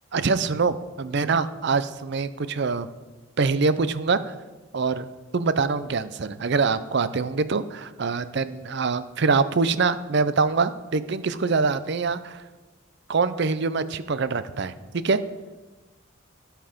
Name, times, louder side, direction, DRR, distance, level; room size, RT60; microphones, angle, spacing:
voice 1, 0.1-2.9 3.4-4.3 4.7-5.1 5.3-12.4 13.1-15.2, right 4 dB, 50° right, 13 dB, 0.5 m, -24 dB
16.5 x 5.8 x 5.1 m, 1.2 s
head